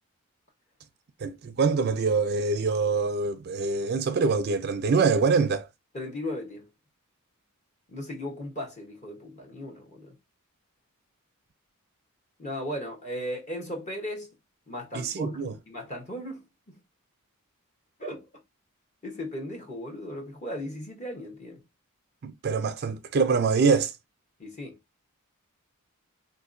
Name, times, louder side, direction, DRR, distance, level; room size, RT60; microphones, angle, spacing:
voice 1, 1.2-5.7 14.9-15.5 22.2-23.9, right 4 dB, 45° right, 0.4 m, -24 dB
voice 2, 5.9-6.7 7.9-10.1 12.4-14.4 14.7-16.8 18.0-18.3 19.0-21.6 24.4-24.8, equal, 30° left, 1.0 m, -37 dB
3.7 x 2.8 x 2.5 m
head